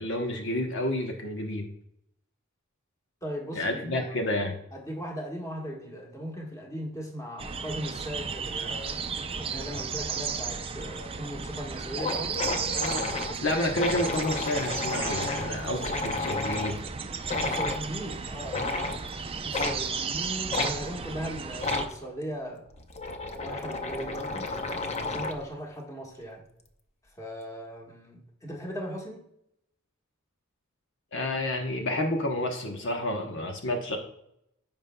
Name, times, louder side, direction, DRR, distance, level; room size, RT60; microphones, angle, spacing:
voice 1, 0.0-1.7 3.5-4.6 13.4-16.8 31.1-34.0, left 1 dB, 60° left, 2 dB, 1.0 m, -30 dB
voice 2, 3.2-4.1 4.7-9.0 9.3-12.5 15.7-15.9 17.4-18.7 19.4-22.7 23.4-24.5 25.0-26.4 27.2-29.2, equal, 15° left, -1 dB, 1.5 m, -38 dB
sound 1, 7.4-21.9, right 5 dB, 25° right, 0.5 m, -35 dB
sound 2, 11.3-11.4 11.7-11.8 12.0-16.8 17.3-17.8 18.5-19.0 19.5-19.8 20.5-20.7 21.6-21.9 22.7-25.5, left 3 dB, 30° left, 0.7 m, -31 dB
15.0 x 5.3 x 2.2 m, 0.77 s
head